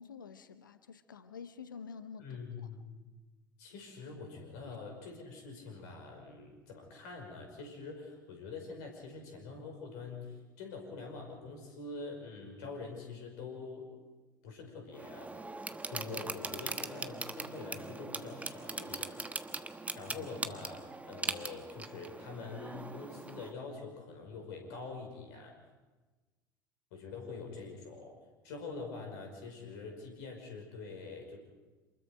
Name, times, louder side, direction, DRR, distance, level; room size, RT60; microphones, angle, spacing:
voice 1, 0.0-2.2, left 6 dB, 80° left, 12 dB, 1.0 m, -48 dB
voice 2, 2.2-2.9 3.6-13.9 14.4-15.5 15.9-19.3 20.0-25.6 26.9-28.2 28.4-31.4, left 4 dB, 60° left, 3 dB, 5.5 m, -45 dB
sound 1, 14.9-23.5, right 3 dB, 15° right, 1.3 m, -41 dB
27.5 x 21.0 x 5.1 m, 1.2 s
figure-of-eight pair, 65°, 11 cm